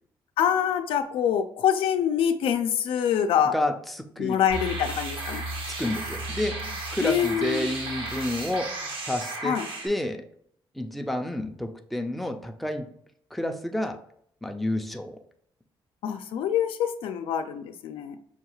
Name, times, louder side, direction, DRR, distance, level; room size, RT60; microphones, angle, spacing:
voice 1, 0.4-3.5 4.2-5.4 7.0-7.7 9.4-9.6 16.0-18.2, left 9 dB, 90° left, 7 dB, 0.4 m, -25 dB
voice 2, 3.5-4.4 5.8-10.2 10.7-12.9 13.3-14.0 14.4-15.2, left 1 dB, ahead, 4 dB, 0.4 m, -30 dB
sound 1, 4.5-9.9, right 2 dB, 70° right, 0.9 m, -34 dB
5.7 x 2.3 x 2.9 m, 0.67 s
cardioid pair, 130°, 9 cm